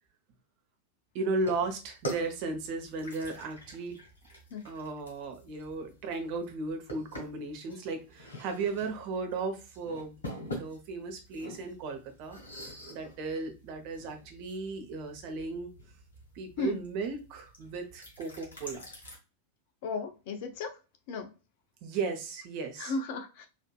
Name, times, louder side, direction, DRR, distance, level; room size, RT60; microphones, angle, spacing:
voice 1, 1.1-4.0 4.6-15.7 16.3-18.9 21.8-22.9, right 3 dB, 45° right, 4 dB, 0.9 m, -36 dB
sound 1, 1.4-19.2, right 1 dB, 70° left, 1.5 m, -46 dB
voice 2, 19.8-20.7 21.1-21.3 22.8-23.5, left 3 dB, 50° left, 7 dB, 0.7 m, -34 dB
4.3 x 2.7 x 2.2 m, 0.30 s
figure-of-eight pair, 90°, 0 cm